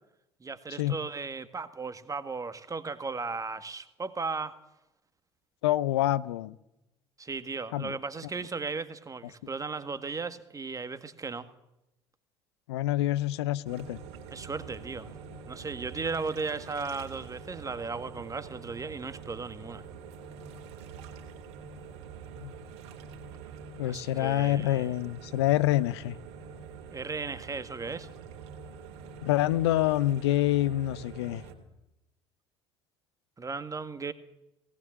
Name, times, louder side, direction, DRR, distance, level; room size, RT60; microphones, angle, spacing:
voice 1, 0.4-4.6 7.2-11.5 14.3-15.1 15.5-19.8 23.8-24.9 26.9-28.1 33.4-34.1, right 4 dB, 25° right, 1.8 m, -36 dB
voice 2, 5.6-6.6 7.7-7.9 12.7-14.0 22.3-22.5 23.8-26.2 29.2-31.4, left 14 dB, 75° left, 0.7 m, -27 dB
sound 1, 13.6-31.5, right 6 dB, 65° right, 3.1 m, -45 dB
18.5 x 18.5 x 7.5 m
figure-of-eight pair, 60°, 14 cm